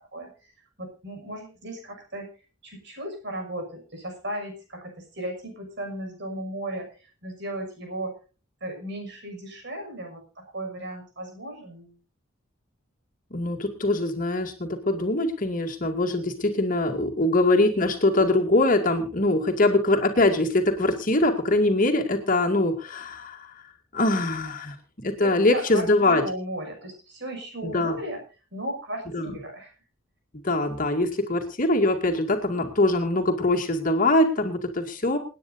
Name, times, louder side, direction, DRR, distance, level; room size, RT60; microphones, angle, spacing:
voice 1, 0.8-2.3 2.6-6.9 7.2-8.2 8.6-12.0 25.2-28.2 28.5-29.7, right 1 dB, 55° right, 3 dB, 6.2 m, -35 dB
voice 2, 13.3-23.5 23.9-26.2 27.6-28.0 29.1-29.4 30.3-35.2, left 2 dB, 40° left, 2 dB, 2.3 m, -23 dB
28.5 x 9.7 x 2.7 m, 0.33 s
head